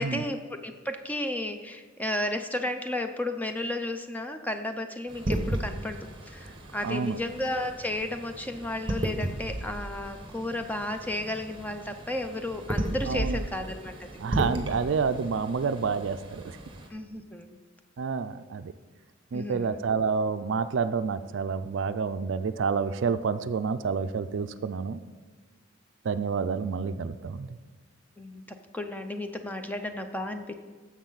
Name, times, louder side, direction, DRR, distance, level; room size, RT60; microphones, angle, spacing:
voice 1, 0.0-6.0 6.3-14.1 16.9-17.6 19.3-19.8 28.2-30.5, left 1 dB, 10° left, 6 dB, 0.5 m, -33 dB
sound 1, 5.1-16.9, right 1 dB, 25° right, 1.1 m, -35 dB
voice 2, 6.8-7.2 13.1-13.4 14.2-16.6 18.0-18.7 19.3-25.0 26.0-27.6, right 5 dB, 60° right, 11 dB, 0.4 m, -29 dB
10.5 x 7.4 x 4.0 m, 1.4 s
head